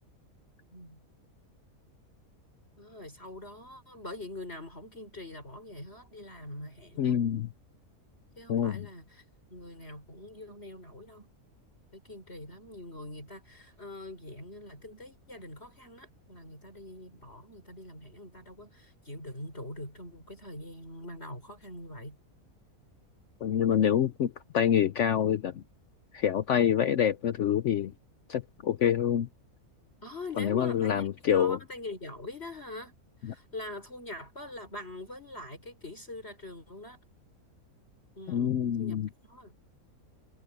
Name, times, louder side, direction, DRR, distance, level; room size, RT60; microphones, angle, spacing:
voice 1, 0.7-1.0 2.8-7.2 8.4-9.2 9.5-11.3 11.9-22.2 30.0-33.0 33.2-37.0 38.1-39.0 39.3-39.6, left 2 dB, 45° left, 5.8 m, -44 dB
voice 2, 7.0-7.5 8.5-8.9 23.4-25.6 26.1-27.9 28.3-29.3 30.4-31.6 33.3-33.4 38.3-39.1, left 9 dB, 60° left, 0.9 m, -26 dB
omnidirectional pair, 1.6 m